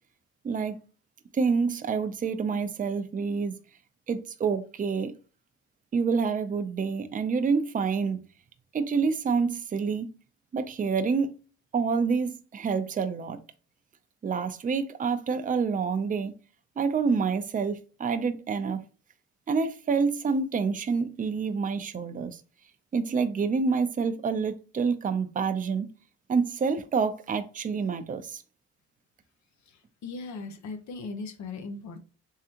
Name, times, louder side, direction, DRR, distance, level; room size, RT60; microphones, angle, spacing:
voice 1, 0.4-0.8 1.3-3.5 4.1-5.1 5.9-8.2 8.7-10.1 10.5-11.3 11.7-13.4 14.2-16.3 16.8-18.8 19.5-22.4 22.9-25.9 26.3-28.4, right 5 dB, 25° right, 0.5 m, -27 dB
voice 2, 29.7-32.0, left 3 dB, 65° left, 0.8 m, -38 dB
3.7 x 3.3 x 2.8 m
cardioid pair, 90°, 30 cm